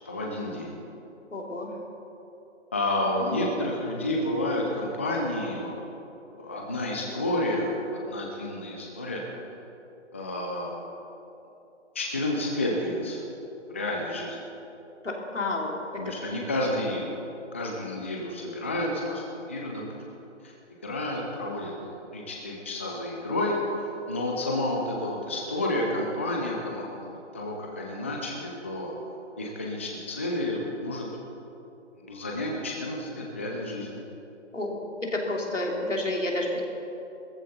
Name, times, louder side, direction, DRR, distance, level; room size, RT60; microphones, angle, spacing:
voice 1, 0.1-0.7 2.7-6.0 6.3-9.2 10.1-10.8 11.9-13.2 13.7-14.4 15.9-17.2 17.5-19.8 20.4-20.5 20.8-21.7 22.1-23.5 23.8-26.9 27.3-28.9 29.4-31.1 32.0-34.0, left 1 dB, 10° left, -1 dB, 0.5 m, -30 dB
voice 2, 1.3-1.7 3.3-3.7 15.0-15.7 34.5-34.8 35.1-36.6, left 2 dB, 85° left, -1 dB, 3.1 m, -30 dB
17.0 x 14.5 x 4.2 m, 2.9 s
figure-of-eight pair, 145°, 36 cm